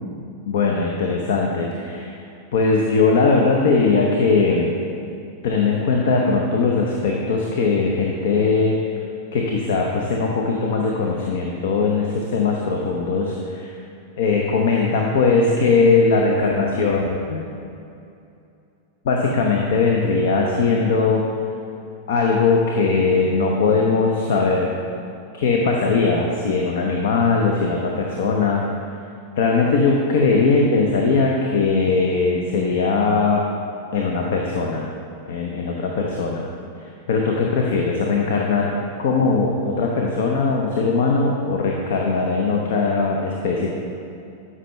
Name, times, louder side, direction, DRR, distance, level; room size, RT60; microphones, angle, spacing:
voice 1, 0.5-2.2 2.5-4.7 5.4-8.9 9.3-13.7 14.2-17.5 19.0-21.2 22.1-24.7 25.3-28.6 29.4-33.5 33.9-34.9 35.3-36.5 36.8-38.7 39.0-43.8, left 4 dB, 55° left, 0 dB, 0.8 m, -20 dB
12.5 x 5.6 x 3.2 m, 2.6 s
figure-of-eight pair, 90°, 0 cm